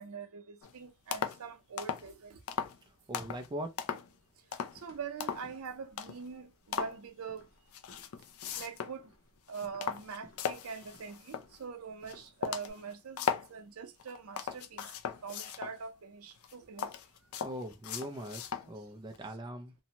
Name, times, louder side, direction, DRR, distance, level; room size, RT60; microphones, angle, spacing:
voice 1, 0.0-2.4 4.7-7.4 8.6-9.1 9.5-14.9 15.2-16.9, right 5 dB, 85° right, 0.6 m, -43 dB
sound 1, 0.6-0.8 1.1-1.4 1.8-2.1 2.5-2.8 3.1-3.5 3.8-4.2 4.5-4.8 5.2-5.5 6.0-6.3 6.7-7.0 7.7-9.0 9.4-11.6 12.1-12.2 12.4-13.5 14.0-15.8 16.4-18.7 19.1-19.2, left 7 dB, 85° left, 0.4 m, -38 dB
voice 2, 2.9-3.8 17.4-19.7, right 1 dB, 20° right, 0.4 m, -41 dB
sound 2, 4.7-12.7, left 2 dB, 65° left, 0.8 m, -61 dB
2.6 x 2.1 x 2.8 m
head